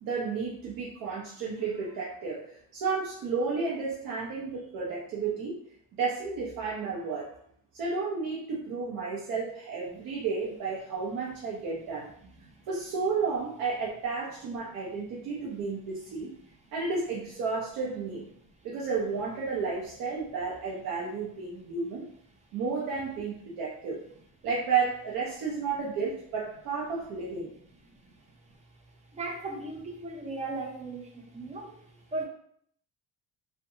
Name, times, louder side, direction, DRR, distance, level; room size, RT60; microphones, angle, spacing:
voice 1, 0.0-5.6 5.9-7.3 7.7-12.1 12.7-16.3 16.7-18.3 18.6-22.0 22.5-24.0 24.4-27.5, right 4 dB, 70° right, -4 dB, 0.6 m, -32 dB
voice 2, 29.1-31.7 32.1-32.2, right 2 dB, 20° right, 0 dB, 0.3 m, -36 dB
2.6 x 2.1 x 2.7 m, 0.65 s
cardioid pair, 140°, 37 cm